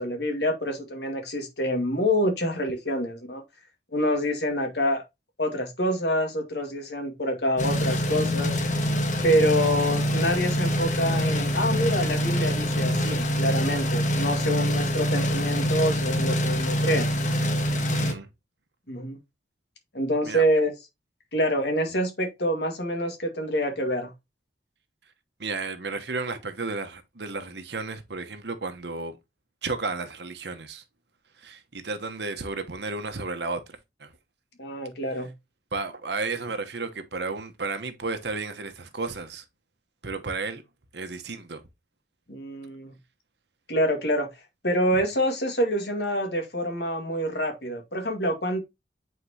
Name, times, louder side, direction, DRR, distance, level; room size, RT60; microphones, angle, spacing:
voice 1, 0.0-3.4 3.9-5.0 5.4-8.6 9.2-17.1 18.9-19.2 19.9-20.7 21.3-24.1 34.6-35.3 42.3-42.9 43.7-44.3 44.6-48.6, equal, 65° left, 2.0 m, -26 dB
sound 1, 7.6-18.1, equal, 45° left, 1.3 m, -25 dB
voice 2, 17.9-18.3 20.2-20.4 21.9-22.0 25.4-29.2 29.6-30.8 31.4-34.1 35.7-39.4 40.0-40.6 40.9-41.6, right 3 dB, 70° right, 1.1 m, -33 dB
8.2 x 4.5 x 2.8 m
head